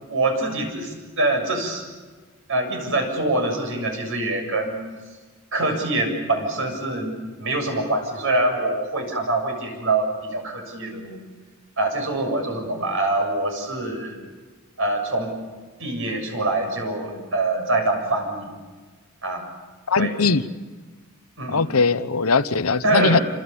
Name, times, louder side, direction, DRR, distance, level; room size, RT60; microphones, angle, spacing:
voice 1, 0.1-1.8 2.5-4.8 5.5-11.3 11.8-14.2 14.8-15.4 15.8-18.5 19.2-19.4 20.0-20.1 21.4-21.7 22.8-23.2, right 2 dB, 65° right, 3 dB, 7.4 m, -24 dB
voice 2, 19.9-20.4 21.5-23.2, left 4 dB, 75° left, 12 dB, 1.0 m, -20 dB
28.5 x 26.5 x 7.1 m, 1.3 s
head